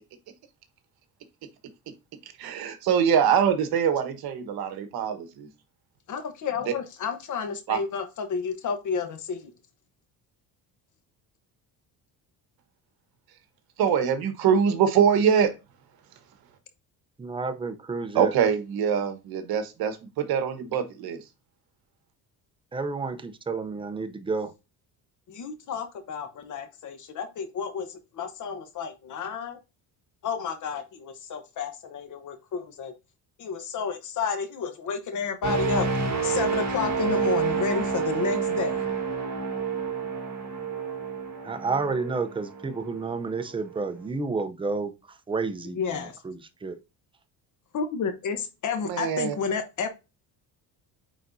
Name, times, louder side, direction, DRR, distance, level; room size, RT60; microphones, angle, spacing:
voice 1, 2.4-5.5 7.7-7.8 13.8-15.5 18.1-21.2 48.8-49.3, right 7 dB, 65° right, 1.3 m, -23 dB
voice 2, 6.1-9.5 25.3-29.6 30.2-32.9 33.4-35.9 36.2-38.8 45.6-46.2 47.7-49.9, left 6 dB, 50° left, 1.1 m, -31 dB
voice 3, 17.2-18.3 22.7-24.5 41.4-44.9 45.3-46.8, right 4 dB, 15° right, 0.6 m, -30 dB
sound 1, 35.4-43.2 43.7-43.9, right 5 dB, 45° right, 2.5 m, -29 dB
8.9 x 4.0 x 2.7 m
cardioid pair, 130°, 39 cm